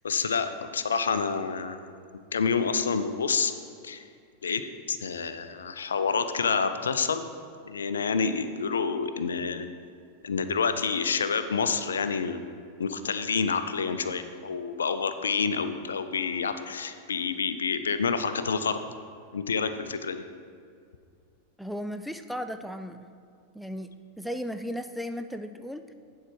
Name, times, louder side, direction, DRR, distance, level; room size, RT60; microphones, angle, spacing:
voice 1, 0.0-1.8 2.3-3.5 3.8-4.0 4.4-4.6 4.9-7.2 7.6-9.7 10.2-12.4 12.8-18.8 19.3-20.2, left 5 dB, 70° left, 10 dB, 0.5 m, -28 dB
voice 2, 21.6-23.1 23.5-23.9 24.2-25.9, equal, ahead, 8 dB, 0.3 m, -35 dB
9.9 x 4.7 x 6.1 m, 2.3 s
figure-of-eight pair, 90°, 0 cm